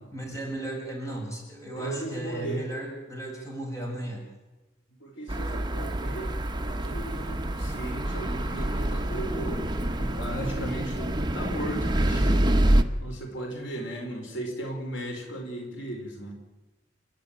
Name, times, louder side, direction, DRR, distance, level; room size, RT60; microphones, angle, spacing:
voice 1, 0.1-4.2, right 1 dB, 15° left, 0 dB, 6.4 m, -35 dB
voice 2, 1.7-2.7 5.0-6.4 6.6-9.6 9.9-12.5 13.0-16.3, right 1 dB, 90° left, 2 dB, 5.1 m, -36 dB
sound 1, 5.3-12.8, right 1 dB, 25° right, 1.1 m, -27 dB
29.0 x 11.5 x 9.2 m, 1.1 s
head